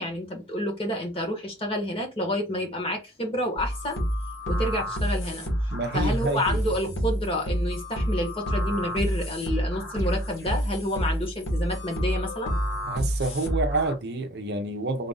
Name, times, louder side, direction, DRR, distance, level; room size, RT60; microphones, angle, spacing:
voice 1, 0.0-4.0 4.5-5.5 5.9-12.5, left 1 dB, 30° left, 1.5 m, -29 dB
sound 1, 3.6-13.9, equal, 80° left, 1.9 m, -28 dB
voice 2, 5.7-6.6 12.8-15.1, right 2 dB, 55° right, 0.6 m, -28 dB
3.9 x 2.6 x 3.8 m
head